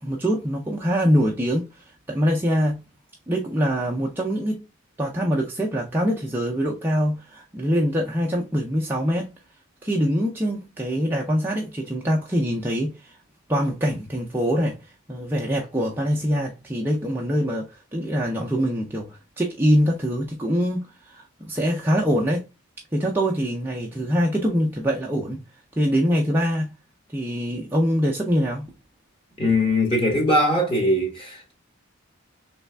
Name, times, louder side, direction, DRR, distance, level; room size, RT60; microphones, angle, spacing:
voice 1, 0.0-2.8 3.3-4.6 5.0-9.3 9.8-13.2 13.5-22.4 22.9-25.4 25.8-26.7 27.1-28.7, equal, 10° right, 0.4 m, -24 dB
voice 2, 29.4-31.5, left 1 dB, 25° left, 1.2 m, -21 dB
3.3 x 3.2 x 3.2 m
head